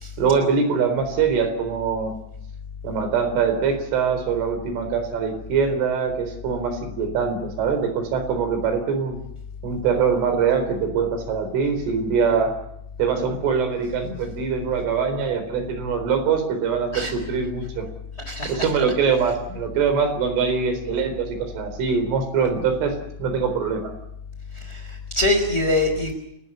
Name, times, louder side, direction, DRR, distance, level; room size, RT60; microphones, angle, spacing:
voice 1, 0.2-2.2 2.8-9.2 9.6-12.6 13.0-17.9 18.5-22.9 23.2-23.9, right 6 dB, 80° right, 7 dB, 6.5 m, -23 dB
voice 2, 18.3-18.7 24.5-26.1, left 2 dB, 15° left, 6 dB, 3.7 m, -24 dB
29.5 x 14.0 x 9.9 m, 0.78 s
omnidirectional pair, 5.5 m